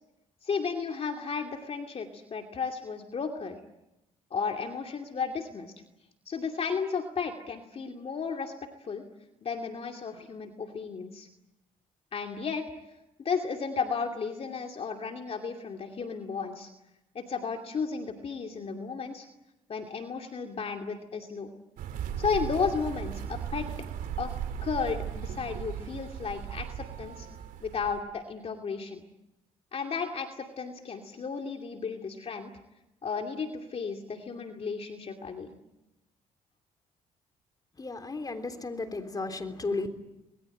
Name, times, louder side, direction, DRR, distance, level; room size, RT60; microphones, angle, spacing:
voice 1, 0.4-3.6 4.3-5.7 6.3-8.5 8.8-9.0 9.4-11.3 12.1-12.6 13.2-16.7 17.1-19.3 19.7-21.5 22.2-23.7 24.2-24.3 24.6-27.3 27.6-29.0 29.7-32.5 33.0-35.5, left 5 dB, 45° left, 3 dB, 2.7 m, -33 dB
sound 1, 21.8-28.0, right 8 dB, 80° right, 2.9 m, -37 dB
voice 2, 37.8-39.9, left 3 dB, 25° left, 7 dB, 3.6 m, -34 dB
26.0 x 21.5 x 9.1 m, 0.92 s
cardioid pair, 90°, 14 cm